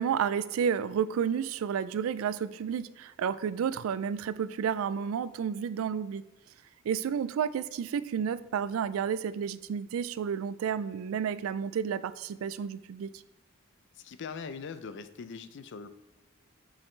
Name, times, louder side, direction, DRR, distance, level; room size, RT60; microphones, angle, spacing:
voice 1, 0.0-6.2 6.8-13.1, right 7 dB, 75° right, 15 dB, 0.3 m, -31 dB
voice 2, 13.9-15.9, left 5 dB, 60° left, 12 dB, 0.4 m, -41 dB
7.1 x 4.8 x 3.2 m, 1.0 s
head